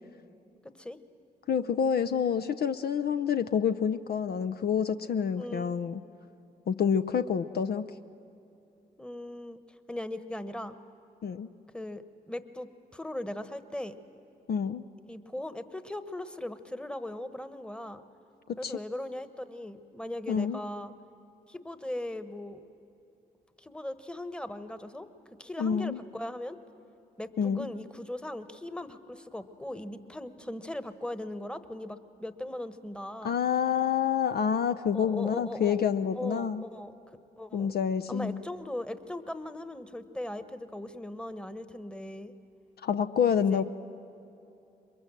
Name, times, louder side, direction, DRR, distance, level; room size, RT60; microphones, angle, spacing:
voice 1, 1.5-6.0 6.7-7.9 11.2-11.5 14.5-14.8 18.6-18.7 20.3-20.6 25.6-26.0 27.4-27.7 33.2-36.6 37.5-38.4 42.8-43.6, left 7 dB, 60° left, 10 dB, 0.6 m, -28 dB
voice 2, 5.4-5.8 9.0-9.6 9.9-10.7 11.7-14.0 15.1-18.0 18.6-20.9 21.5-22.6 23.6-25.1 25.4-26.6 27.2-33.4 34.9-35.8 36.1-36.9 37.4-37.7 38.1-42.3 43.4-43.6, left 1 dB, 5° left, 11 dB, 1.2 m, -39 dB
22.5 x 22.0 x 7.6 m, 2.8 s
supercardioid pair, 45°, 19 cm